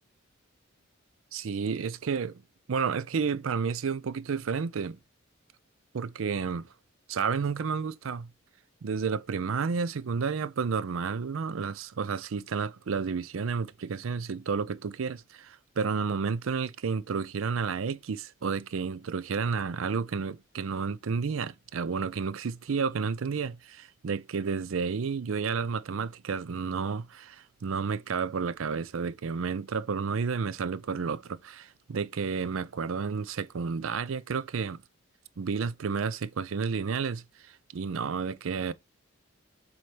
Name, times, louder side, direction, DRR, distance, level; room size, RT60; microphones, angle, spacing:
voice 1, 1.3-2.4 2.7-5.0 5.9-6.7 7.1-8.3 8.8-34.8 35.4-38.7, right 5 dB, 75° right, 0.5 m, -31 dB
7.6 x 4.2 x 3.3 m
head